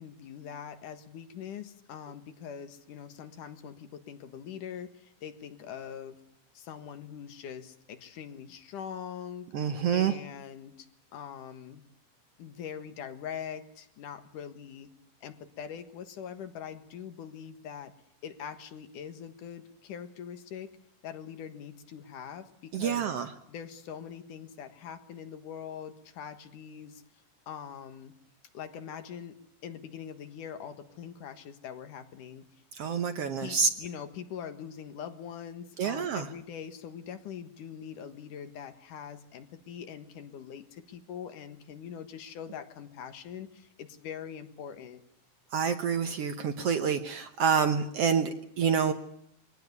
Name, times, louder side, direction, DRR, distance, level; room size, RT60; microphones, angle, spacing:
voice 1, 0.0-6.2 6.5-9.5 9.9-10.9 11.1-11.8 12.4-14.9 15.2-17.9 18.2-20.7 21.0-23.1 23.5-27.0 27.5-28.1 28.5-29.4 29.6-32.5 33.4-45.0, left 8 dB, 75° left, 8 dB, 3.0 m, -43 dB
voice 2, 9.5-10.1 22.7-23.3 32.7-33.7 35.8-36.3 45.5-48.9, right 7 dB, 65° right, 8 dB, 1.7 m, -27 dB
23.0 x 17.5 x 9.5 m, 0.76 s
omnidirectional pair, 3.7 m